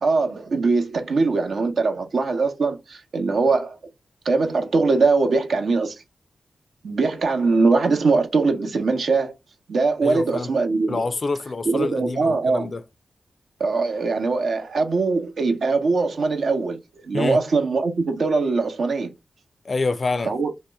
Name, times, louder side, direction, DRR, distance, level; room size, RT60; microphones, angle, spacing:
voice 1, 0.0-3.8 4.2-6.0 6.8-9.3 9.7-11.0 11.6-12.7 13.6-16.8 17.0-19.1 20.3-20.5, right 3 dB, 75° right, 0.7 m, -21 dB
voice 2, 10.0-10.5 10.9-12.8 17.1-17.4 19.6-20.3, left 3 dB, 55° left, 0.4 m, -26 dB
2.8 x 2.1 x 3.3 m
supercardioid pair, 40°, 0 cm